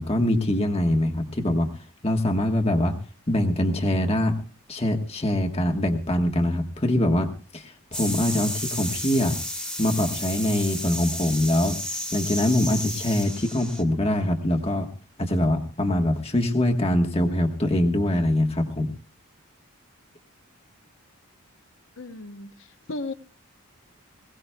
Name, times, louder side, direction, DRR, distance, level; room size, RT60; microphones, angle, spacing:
voice 1, 0.0-1.7 2.0-3.0 3.3-4.3 4.7-9.4 9.8-14.9 15.2-18.9, left 1 dB, 25° left, 3 dB, 1.3 m, -23 dB
sound 1, 7.9-13.8, equal, 5° left, 1.7 m, -32 dB
voice 2, 22.0-22.5 22.9-23.1, left 2 dB, 60° left, 9 dB, 0.9 m, -34 dB
21.5 x 17.0 x 2.3 m, 0.37 s
head